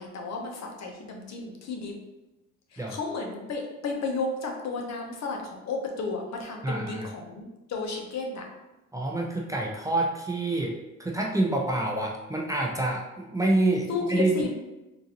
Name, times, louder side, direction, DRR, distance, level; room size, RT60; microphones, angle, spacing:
voice 1, 0.0-2.0 2.7-8.5 13.9-14.5, left 3 dB, 60° left, 1 dB, 0.8 m, -33 dB
voice 2, 6.6-7.1 8.9-14.5, right 2 dB, 10° right, -1 dB, 0.5 m, -27 dB
3.8 x 2.5 x 2.8 m, 1.0 s
cardioid pair, 90°, 30 cm